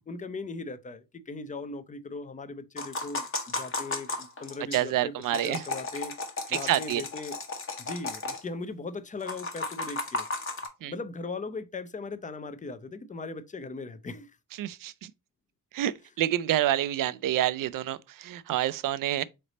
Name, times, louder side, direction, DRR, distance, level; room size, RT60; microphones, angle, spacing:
voice 1, 0.1-5.1 5.4-6.1 6.5-7.4 7.8-10.3 10.8-14.4, left 3 dB, 20° left, 0.5 m, -38 dB
sound 1, 2.8-4.8 5.2-8.4 9.2-10.7, left 3 dB, 40° left, 1.1 m, -34 dB
voice 2, 4.7-5.6 6.5-7.0 10.8-10.9 14.6-15.1 15.7-19.2, right 13 dB, 70° right, 0.5 m, -28 dB
3.9 x 3.3 x 4.0 m
cardioid pair, 95°, 34 cm